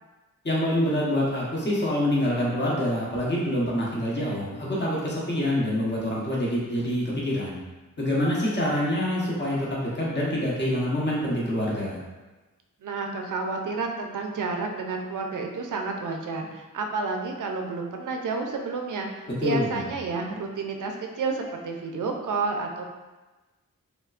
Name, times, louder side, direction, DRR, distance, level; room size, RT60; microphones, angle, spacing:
voice 1, 0.4-7.6 8.0-12.0 19.4-19.8, left 1 dB, 30° left, -6 dB, 0.9 m, -26 dB
voice 2, 12.8-22.8, right 4 dB, 65° right, 3 dB, 0.4 m, -30 dB
3.2 x 2.1 x 2.4 m, 1.2 s
cardioid pair, 60°, 33 cm